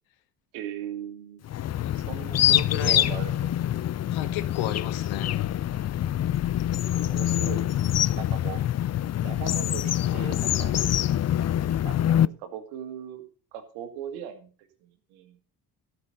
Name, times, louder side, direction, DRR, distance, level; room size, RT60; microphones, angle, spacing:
voice 1, 0.5-1.4 1.9-3.5 6.0-7.8 8.2-8.6 9.2-11.0 11.8-13.2 13.5-14.5 14.8-15.4, right 10 dB, 90° right, 2.0 m, -39 dB
sound 1, 1.5-12.3, left 11 dB, 35° left, 0.5 m, -25 dB
voice 2, 2.4-3.0 4.1-5.4, left 12 dB, 80° left, 1.3 m, -32 dB
12.5 x 6.0 x 6.5 m
supercardioid pair, 65°, 45 cm